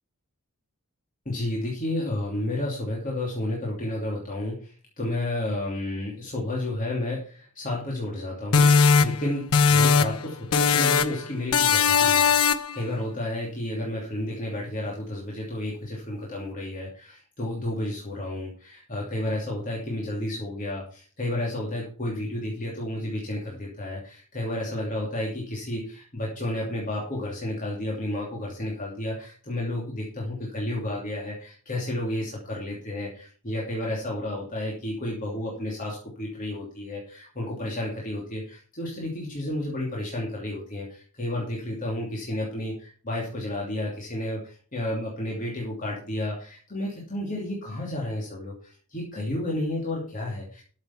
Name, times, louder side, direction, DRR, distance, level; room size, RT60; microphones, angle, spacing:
voice 1, 1.2-50.6, left 1 dB, 35° left, -3 dB, 2.9 m, -31 dB
sound 1, 8.5-10.2 10.5-11.2 11.5-12.8, left 5 dB, 70° left, 0.8 m, -19 dB
12.5 x 7.3 x 5.8 m, 0.43 s
head